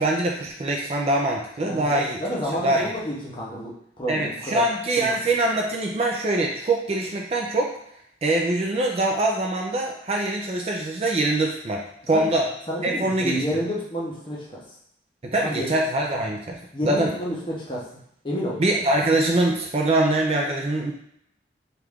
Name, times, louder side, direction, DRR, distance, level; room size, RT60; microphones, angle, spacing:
voice 1, 0.0-2.2 2.6-2.9 4.1-7.7 8.2-12.5 12.8-13.4 15.2-16.6 16.8-17.1 18.6-20.9, right 2 dB, 35° right, 0 dB, 0.4 m, -23 dB
voice 2, 1.6-4.7 5.0-5.1 12.1-12.3 12.7-14.6 15.4-15.7 16.7-17.8 18.2-18.6, equal, 25° left, -4 dB, 0.8 m, -30 dB
3.1 x 2.4 x 3.5 m, 0.73 s
head